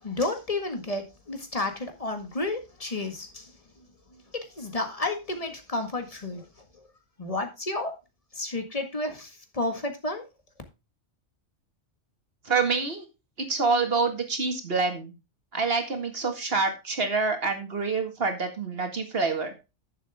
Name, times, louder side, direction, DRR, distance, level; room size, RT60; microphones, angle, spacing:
voice 1, 0.0-3.5 4.4-6.5 6.8-6.9 7.2-7.9 8.3-10.3, left 2 dB, 30° left, 1.8 m, -31 dB
voice 2, 12.4-13.1 13.4-15.1 15.5-19.5, right 4 dB, 50° right, 2.1 m, -27 dB
10.5 x 7.4 x 3.5 m
omnidirectional pair, 1.3 m